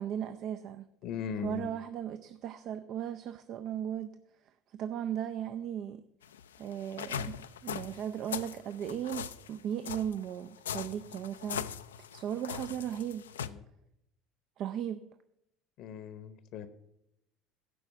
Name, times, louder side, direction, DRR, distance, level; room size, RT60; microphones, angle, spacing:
voice 1, 0.0-0.9 1.4-4.1 4.4-6.0 6.6-11.7 12.0-13.3 14.6-15.0, right 9 dB, 55° right, 10 dB, 0.5 m, -37 dB
voice 2, 1.0-1.7 13.4-13.6 15.8-16.7, left 7 dB, 60° left, 12 dB, 0.8 m, -39 dB
sound 1, 6.2-13.5, left 8 dB, 85° left, 0.3 m, -40 dB
12.0 x 4.8 x 6.9 m, 0.81 s
hypercardioid pair, 70°, 0 cm